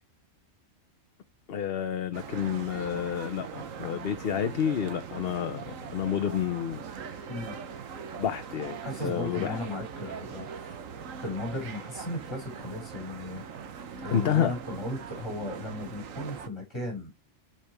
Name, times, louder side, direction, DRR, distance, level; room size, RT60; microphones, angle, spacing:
voice 1, 1.5-6.8 7.1-7.3 8.1-9.6 14.1-14.5, left 9 dB, 55° left, 0.9 m, -30 dB
sound 1, 2.1-16.5, right 6 dB, 90° right, 1.4 m, -41 dB
voice 2, 8.8-10.8 11.2-13.7 14.0-17.1, left 1 dB, 20° left, 6.0 m, -36 dB
10.0 x 5.8 x 3.4 m
omnidirectional pair, 1.3 m